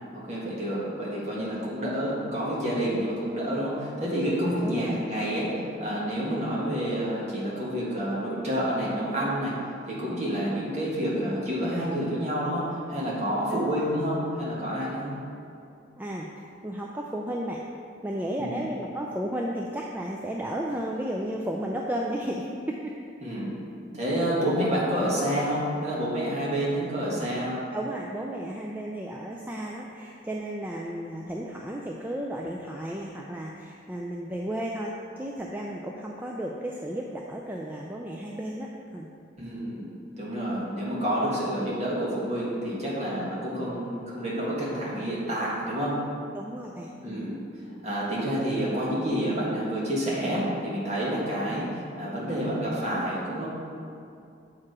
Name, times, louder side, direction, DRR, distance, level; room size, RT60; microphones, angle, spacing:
voice 1, 0.1-9.5 9.9-15.1 18.4-18.6 23.2-23.5 23.9-27.6 39.4-46.0 47.0-47.4 47.8-51.7 52.0-53.5, equal, 35° right, -6 dB, 1.7 m, -28 dB
voice 2, 4.6-5.0 6.3-6.5 13.5-13.8 16.0-16.3 16.6-17.6 18.0-22.8 27.7-39.1 46.3-47.3, right 1 dB, 10° right, -1 dB, 0.3 m, -33 dB
7.3 x 4.6 x 4.8 m, 2.5 s
head